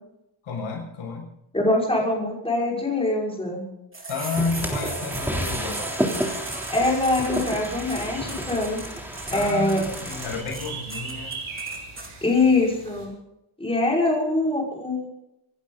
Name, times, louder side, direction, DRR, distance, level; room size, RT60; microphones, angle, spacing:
voice 1, 0.4-1.3 4.1-5.8 9.3-11.4, left 4 dB, 85° left, 0 dB, 6.4 m, -31 dB
voice 2, 1.5-3.6 6.7-8.8 9.3-9.8 12.2-13.1 13.6-15.1, left 2 dB, 10° left, -3 dB, 5.7 m, -23 dB
sound 1, 3.9-12.1, right 2 dB, 25° right, 3.8 m, -36 dB
sound 2, 4.3-10.4, equal, 5° right, 3.4 m, -31 dB
sound 3, 6.4-13.1, right 4 dB, 85° right, 5.7 m, -40 dB
26.0 x 11.5 x 4.0 m, 0.85 s
wide cardioid pair, 105°, 47 cm